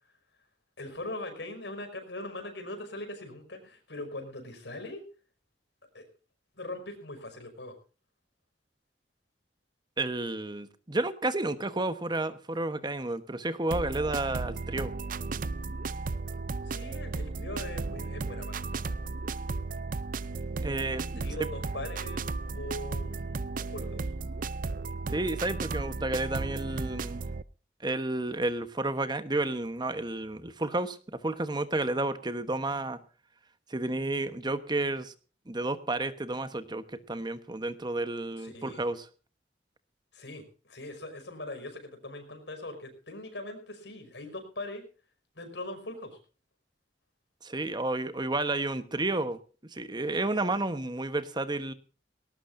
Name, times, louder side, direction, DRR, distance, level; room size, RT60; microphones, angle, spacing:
voice 1, 0.8-5.0 5.9-6.1 6.6-7.7 16.6-18.9 21.2-24.1 38.4-38.9 40.1-44.8 45.4-46.2, left 2 dB, 85° left, 6 dB, 5.6 m, -41 dB
voice 2, 10.0-14.9 20.6-21.2 25.1-27.2 27.8-33.0 33.7-35.1 35.5-39.1 47.4-49.4 49.7-51.7, right 2 dB, 25° right, 12 dB, 1.1 m, -31 dB
sound 1, 13.7-27.4, right 3 dB, 50° right, 0.6 m, -34 dB
19.0 x 18.5 x 2.6 m, 0.37 s
head